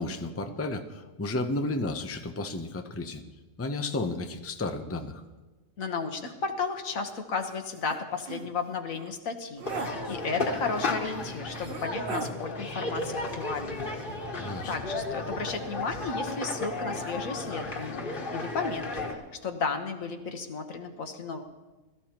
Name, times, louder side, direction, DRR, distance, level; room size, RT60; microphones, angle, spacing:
voice 1, 0.0-3.2 3.6-5.2 14.4-14.7, left 2 dB, 15° left, 5 dB, 0.6 m, -32 dB
voice 2, 5.8-13.8 14.7-21.4, left 4 dB, 85° left, 5 dB, 1.6 m, -34 dB
sound 1, 7.4-7.5 7.9-8.0 8.3-8.5 8.9-9.1 9.6-9.9 10.9-11.0 11.6-12.3 13.7-14.2 14.4-14.6, right 4 dB, 45° right, 1.0 m, -38 dB
sound 2, 9.6-19.1, left 2 dB, 45° left, 1.5 m, -34 dB
21.0 x 13.5 x 3.0 m, 1.2 s
omnidirectional pair, 1.4 m